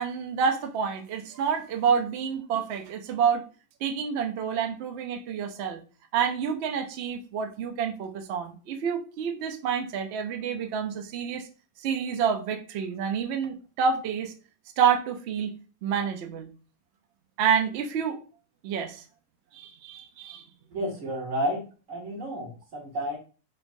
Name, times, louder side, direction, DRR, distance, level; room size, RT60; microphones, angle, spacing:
voice 1, 0.0-3.4 3.8-5.8 6.1-11.5 11.8-14.3 14.8-15.5 15.8-16.5 17.4-18.2 18.6-19.0 19.5-20.4, right 7 dB, 85° right, 4 dB, 0.5 m, -28 dB
voice 2, 20.7-21.6 21.9-23.2, equal, 55° right, -1 dB, 1.4 m, -31 dB
3.2 x 3.2 x 2.5 m, 0.36 s
omnidirectional pair, 1.7 m